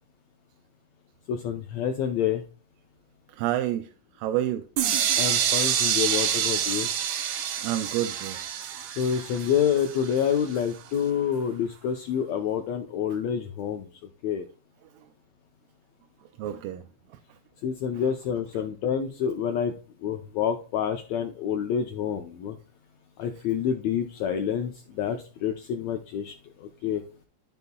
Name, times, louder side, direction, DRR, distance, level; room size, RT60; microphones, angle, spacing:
voice 1, 1.3-2.4 5.2-6.9 9.0-13.9 14.2-14.4 17.6-19.7 20.0-22.6 23.2-27.0, left 8 dB, 80° left, 1.6 m, -28 dB
voice 2, 3.3-4.7 5.1-5.2 7.6-8.4 14.8-15.1 16.2-17.4 17.9-18.1, right 12 dB, 90° right, 2.2 m, -31 dB
sound 1, 4.8-10.6, right 9 dB, 70° right, 1.9 m, -27 dB
12.5 x 5.3 x 2.2 m
omnidirectional pair, 3.9 m